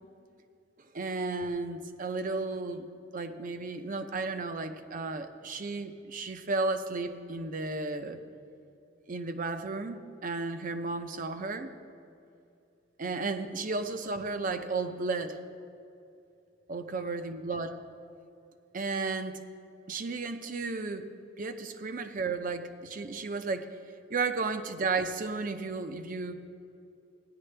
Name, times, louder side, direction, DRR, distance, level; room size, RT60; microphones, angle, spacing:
voice 1, 0.9-2.9 3.1-8.2 9.1-11.7 13.0-15.4 16.7-17.7 18.7-19.4 19.9-21.1 21.4-23.7 24.1-26.5, right 3 dB, 45° right, 8 dB, 0.6 m, -33 dB
16.0 x 10.5 x 3.3 m, 2.6 s
head